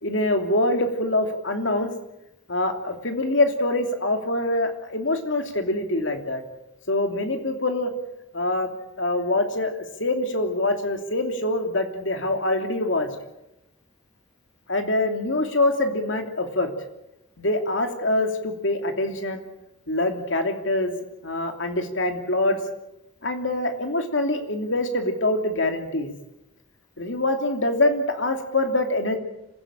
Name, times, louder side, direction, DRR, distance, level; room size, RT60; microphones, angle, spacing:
voice 1, 0.0-1.9 2.5-6.4 6.9-7.9 8.3-8.7 9.0-13.2 14.7-16.7 17.4-19.4 19.9-20.9 21.2-22.6 23.2-26.1 27.0-29.2, left 2 dB, 65° left, 5 dB, 2.9 m, -24 dB
26.0 x 16.0 x 8.9 m, 0.91 s
head